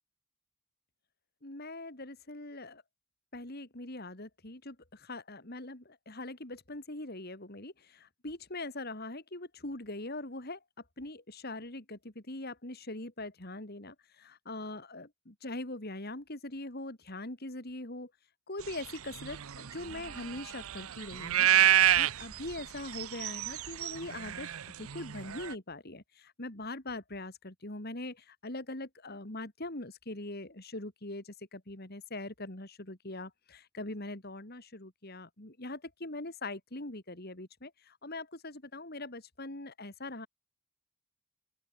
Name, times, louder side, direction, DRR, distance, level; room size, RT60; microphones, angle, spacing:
voice 1, 1.4-2.8 3.3-10.6 11.0-18.1 18.5-21.5 21.9-24.5 24.8-40.3, left 2 dB, 45° left, 2.6 m, -42 dB
sound 1, 18.7-25.5, right 11 dB, 70° right, 0.7 m, -29 dB
open air
head